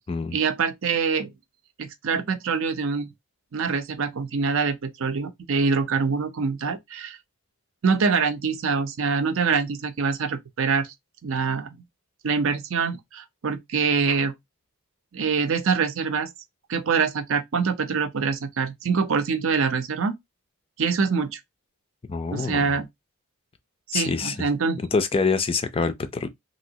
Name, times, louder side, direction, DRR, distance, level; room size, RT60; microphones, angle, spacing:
voice 1, 0.3-1.3 1.8-3.1 3.5-7.2 7.8-10.9 11.2-11.7 12.2-14.3 15.1-16.3 16.7-20.1 20.8-21.4 22.3-22.9 23.9-24.8, right 5 dB, 60° right, 0.5 m, -25 dB
voice 2, 22.1-22.8 23.9-24.4 24.9-26.3, left 4 dB, 25° left, 0.4 m, -25 dB
3.1 x 2.7 x 2.7 m
head